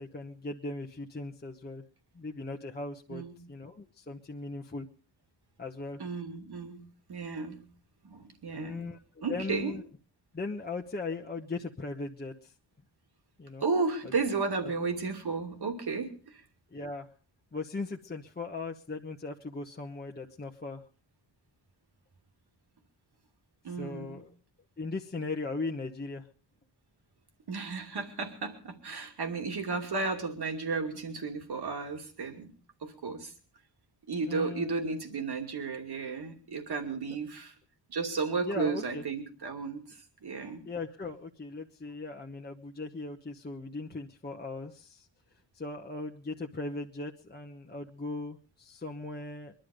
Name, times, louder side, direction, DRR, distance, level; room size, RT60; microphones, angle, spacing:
voice 1, 0.0-1.8 2.1-3.2 3.5-4.9 5.6-6.0 8.5-9.0 9.3-9.8 10.3-12.5 13.4-13.6 16.7-17.1 17.5-20.8 23.8-24.3 24.8-26.3 34.2-34.7 38.4-39.0 40.6-45.1 45.5-49.5, left 3 dB, 20° left, 1 dB, 1.1 m, -38 dB
voice 2, 3.1-3.4 6.0-7.7 8.0-8.9 9.2-9.7 13.6-16.4 23.6-24.2 27.5-32.5 32.8-33.3 34.1-37.5 37.9-40.6, right 4 dB, 60° right, 4 dB, 2.7 m, -34 dB
22.0 x 11.5 x 5.2 m, 0.41 s
wide cardioid pair, 110°, 44 cm